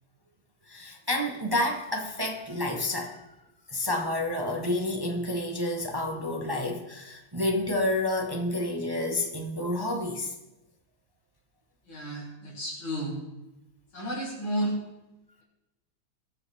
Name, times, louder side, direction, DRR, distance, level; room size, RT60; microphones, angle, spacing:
voice 1, 0.7-3.2 3.7-10.3, left 1 dB, 25° right, 2 dB, 0.5 m, -29 dB
voice 2, 11.8-13.2 13.9-14.8, right 1 dB, 75° left, -4 dB, 4.2 m, -32 dB
19.5 x 6.9 x 3.5 m, 1.0 s
omnidirectional pair, 2.2 m